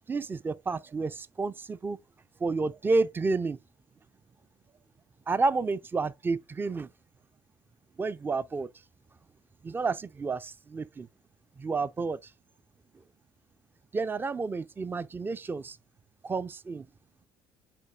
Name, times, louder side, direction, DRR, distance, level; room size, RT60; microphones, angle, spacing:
voice 1, 0.1-2.0 2.4-3.6 5.3-6.9 8.0-8.7 9.6-11.1 11.6-12.3 13.9-15.8 16.2-16.9, right 3 dB, 15° right, 0.4 m, -30 dB
9.7 x 4.1 x 2.4 m
hypercardioid pair, 55°, 12 cm